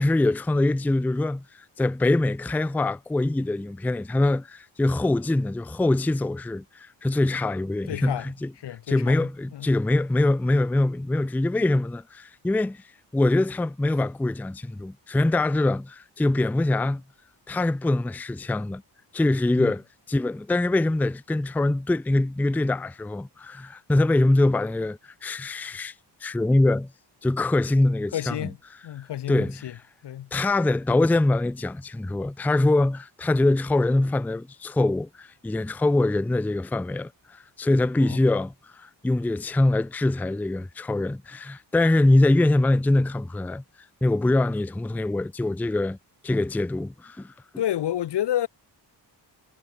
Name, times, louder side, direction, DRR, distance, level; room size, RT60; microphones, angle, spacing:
voice 1, 0.0-8.5 8.9-12.8 13.1-17.0 17.5-18.8 19.1-19.8 20.1-25.9 26.2-26.9 27.2-28.5 29.3-29.6 30.3-43.6 44.0-46.0 46.2-47.3, left 2 dB, 5° left, 0.4 m, -23 dB
voice 2, 7.9-8.3 8.6-9.7 19.6-19.7 28.1-28.6 28.8-29.8 30.0-30.3 38.0-38.2 47.6-48.5, left 12 dB, 70° left, 0.9 m, -30 dB
cardioid pair, 90°, 43 cm